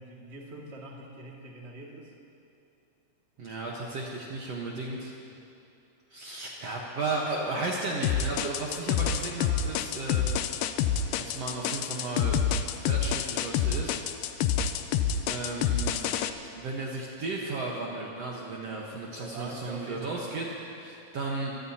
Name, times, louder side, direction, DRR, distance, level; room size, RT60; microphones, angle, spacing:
voice 1, 0.0-2.1 19.1-20.5, right 2 dB, 25° right, -3 dB, 1.8 m, -43 dB
voice 2, 3.4-5.2 6.1-10.7 11.2-12.4 12.7-14.0 15.3-16.2 16.6-21.5, right 3 dB, 60° right, -3 dB, 2.1 m, -34 dB
sound 1, 8.0-16.3, left 8 dB, 85° left, 2.3 m, -27 dB
25.0 x 18.0 x 2.9 m, 2.8 s
omnidirectional pair, 3.8 m